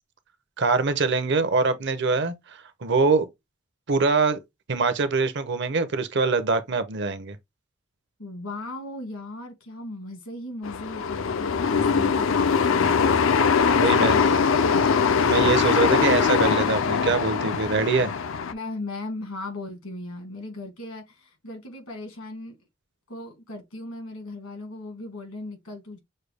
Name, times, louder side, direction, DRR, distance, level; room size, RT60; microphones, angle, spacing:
voice 1, 0.6-3.3 3.9-4.4 4.7-7.4 11.7-12.2 13.7-14.2 15.2-18.1, right 4 dB, 55° right, 0.7 m, -24 dB
voice 2, 8.2-13.7 18.5-22.6 23.1-26.0, left 2 dB, 80° left, 1.9 m, -38 dB
sound 1, 10.6-18.5, left 6 dB, 65° left, 0.4 m, -22 dB
6.5 x 2.3 x 3.3 m
head